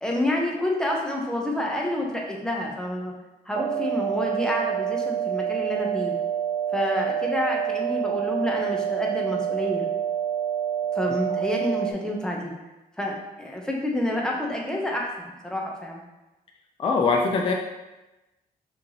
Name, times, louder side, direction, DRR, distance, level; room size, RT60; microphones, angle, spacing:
voice 1, 0.0-3.1 3.5-6.1 6.7-9.9 10.9-12.5 13.0-16.0, left 1 dB, 5° left, -1 dB, 0.7 m, -28 dB
sound 1, 3.5-11.9, right 9 dB, 65° right, 0.5 m, -27 dB
voice 2, 16.8-17.5, left 4 dB, 35° left, 1 dB, 0.4 m, -22 dB
5.0 x 3.1 x 2.8 m, 1.0 s
cardioid pair, 135°, 16 cm